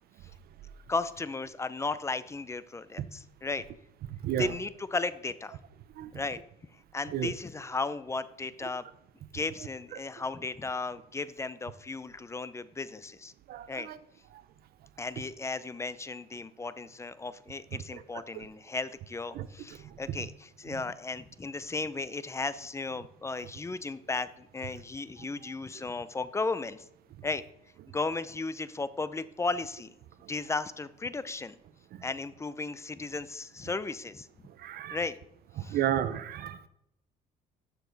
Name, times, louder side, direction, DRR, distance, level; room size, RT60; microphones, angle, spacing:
voice 1, 0.9-3.6 4.4-5.6 6.1-6.4 6.9-8.8 9.3-13.3 13.7-13.9 15.0-26.8 27.2-27.4 27.9-29.9 30.3-31.6 32.0-34.3 34.9-35.2 35.6-35.8, left 3 dB, 15° left, 15 dB, 0.5 m, -35 dB
voice 2, 13.5-14.0 19.3-19.5 31.9-32.0 34.6-35.0 35.6-36.6, right 11 dB, 65° right, 14 dB, 0.7 m, -32 dB
13.0 x 7.0 x 4.0 m, 0.81 s
cardioid pair, 110°, 17 cm